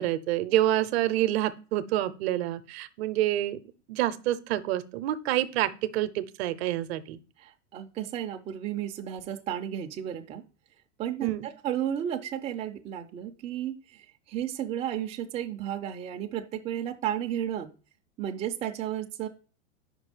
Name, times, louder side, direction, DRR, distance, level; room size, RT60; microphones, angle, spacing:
voice 1, 0.0-3.6 3.9-7.2 11.2-11.5, right 14 dB, 60° right, 14 dB, 0.7 m, -27 dB
voice 2, 7.4-10.4 11.0-17.7 18.2-19.3, right 10 dB, 20° right, 4 dB, 0.4 m, -33 dB
5.3 x 4.8 x 4.8 m, 0.36 s
hypercardioid pair, 125°, 37 cm